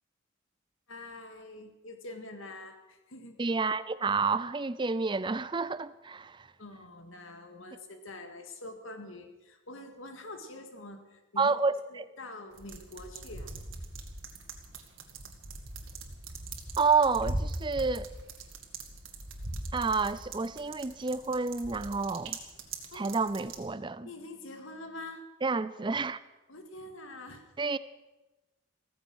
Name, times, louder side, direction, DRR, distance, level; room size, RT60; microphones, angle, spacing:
voice 1, 0.9-3.4 6.6-11.6 11.9-13.5 22.9-23.2 24.0-25.2 26.5-27.5, left 2 dB, 75° left, 6 dB, 2.0 m, -45 dB
voice 2, 3.4-6.5 11.4-12.1 16.8-18.1 19.7-22.4 22.9-24.1 25.4-26.2 27.6-27.8, right 4 dB, 25° right, 15 dB, 0.5 m, -29 dB
sound 1, 12.5-23.6, right 2 dB, 75° right, 2.1 m, -41 dB
15.5 x 15.0 x 6.3 m, 1.1 s
head